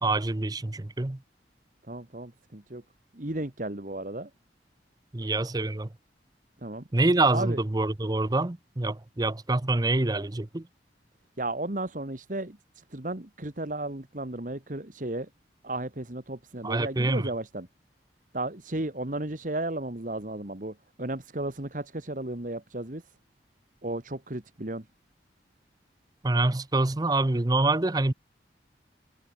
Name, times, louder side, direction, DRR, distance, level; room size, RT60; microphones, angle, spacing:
voice 1, 0.0-1.2 5.1-5.9 6.9-10.7 16.6-17.3 26.2-28.1, right 2 dB, 20° right, 0.7 m, -26 dB
voice 2, 1.9-2.8 3.1-4.3 6.6-6.9 7.3-7.6 11.4-15.3 15.6-17.7 18.3-23.1 23.8-24.9, right 2 dB, 45° right, 1.8 m, -34 dB
head